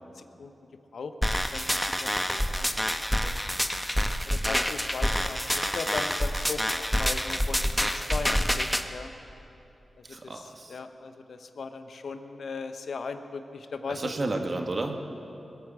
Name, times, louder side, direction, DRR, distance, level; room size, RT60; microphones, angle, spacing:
voice 1, 0.2-0.5 0.9-3.4 4.3-9.1 10.1-14.1, left 4 dB, 75° left, 8 dB, 0.8 m, -38 dB
sound 1, 1.2-8.8, equal, 5° left, 0.9 m, -27 dB
voice 2, 10.0-10.8 13.9-14.9, right 2 dB, 50° right, 4 dB, 1.6 m, -32 dB
21.5 x 8.3 x 7.5 m, 2.9 s
cardioid pair, 55°, 0 cm